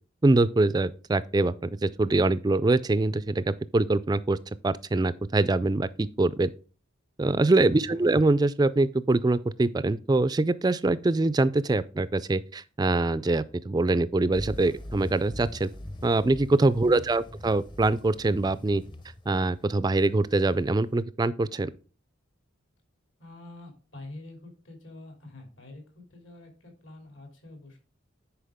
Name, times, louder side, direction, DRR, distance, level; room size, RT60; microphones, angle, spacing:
voice 1, 0.2-4.4 4.6-6.5 7.2-15.7 16.0-18.8 19.3-21.7, right 2 dB, 20° right, 0.3 m, -24 dB
voice 2, 7.7-8.1 16.8-17.1 23.2-27.8, left 2 dB, 70° left, 2.8 m, -46 dB
sound 1, 14.3-21.0, left 1 dB, 25° left, 0.6 m, -42 dB
10.0 x 4.7 x 3.5 m
head